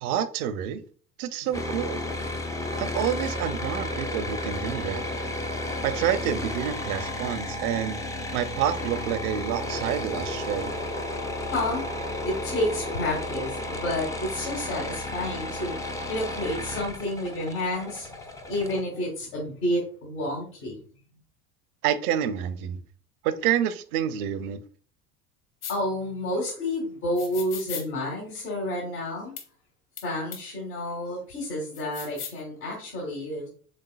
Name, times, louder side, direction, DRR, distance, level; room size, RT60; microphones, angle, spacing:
voice 1, 0.0-0.8 1.2-2.0 2.8-5.0 5.8-8.0 8.3-10.7 21.8-22.8 23.2-24.6, right 9 dB, 70° right, 12 dB, 0.7 m, -28 dB
sound 1, 1.5-18.8, left 1 dB, 10° left, 0.3 m, -33 dB
voice 2, 11.5-11.9 12.2-20.7 25.7-29.3 30.0-33.5, left 1 dB, 75° left, -3 dB, 1.9 m, -30 dB
sound 2, 25.6-25.8 27.2-27.9 29.4-29.5 30.0-30.1 30.3-30.4 31.7-32.4, left 8 dB, 50° left, 1.2 m, -37 dB
5.2 x 3.7 x 2.3 m, 0.43 s
hypercardioid pair, 75°, 47 cm